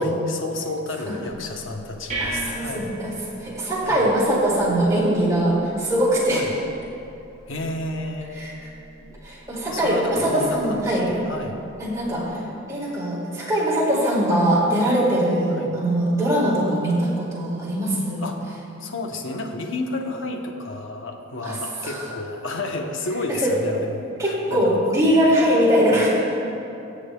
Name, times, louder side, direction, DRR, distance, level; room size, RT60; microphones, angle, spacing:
voice 1, 0.0-2.9 3.8-4.1 6.3-6.5 7.5-8.4 9.0-9.2 9.7-11.6 15.5-15.7 18.2-24.8 25.8-26.0, left 2 dB, 65° left, 3 dB, 0.9 m, -31 dB
sound 1, 1.7-12.3, right 1 dB, 35° right, 2.2 m, -39 dB
voice 2, 2.2-3.1 3.4-6.4 8.4-8.5 9.2-11.0 11.8-12.2 12.7-18.2 21.4-21.6 21.8-22.0 23.3-23.5 24.2-26.2, right 1 dB, 15° right, -7 dB, 2.2 m, -21 dB
19.5 x 7.1 x 2.2 m, 2.9 s
head